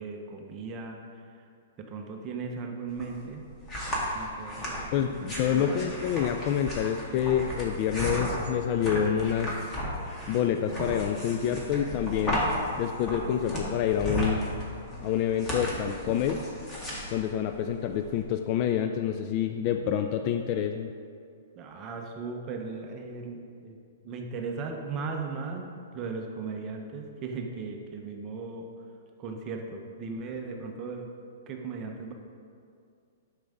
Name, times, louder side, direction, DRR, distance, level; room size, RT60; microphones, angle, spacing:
voice 1, 0.0-1.5 1.9-3.4 4.1-5.2 5.5-5.9 21.5-23.8 24.0-25.7 25.9-28.7 29.2-31.1 31.5-32.1, right 4 dB, 25° right, 2 dB, 0.8 m, -37 dB
sound 1, 2.9-18.2, equal, 15° left, 1.8 m, -34 dB
voice 2, 4.9-9.7 10.3-12.4 12.8-14.4 15.0-16.4 17.1-20.9, left 9 dB, 35° left, 6 dB, 0.4 m, -27 dB
9.9 x 6.5 x 3.6 m, 2.3 s
hypercardioid pair, 150°, 0 cm